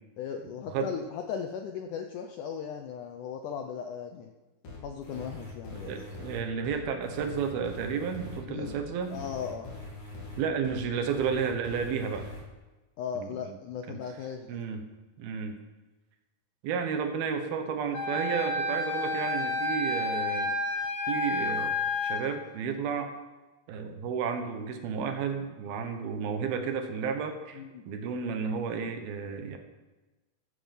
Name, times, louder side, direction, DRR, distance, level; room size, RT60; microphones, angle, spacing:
voice 1, 0.2-4.3 4.8-5.9 8.5-8.7 9.1-9.8 13.0-14.6 27.5-27.9, left 7 dB, 80° left, 5 dB, 1.8 m, -37 dB
sound 1, 4.6-12.4, left 2 dB, 55° left, 4.6 m, -43 dB
voice 2, 5.7-9.2 10.4-12.3 13.2-13.5 13.9-14.0 14.5-14.9 15.2-15.6 16.6-20.5 21.1-23.1 23.7-27.6 27.9-29.6, right 6 dB, 75° right, 6 dB, 3.1 m, -32 dB
Wind instrument woodwind instrument, 17.9-22.2, left 2 dB, 35° left, 2.2 m, -30 dB
13.5 x 9.8 x 7.3 m, 1.2 s
omnidirectional pair, 4.5 m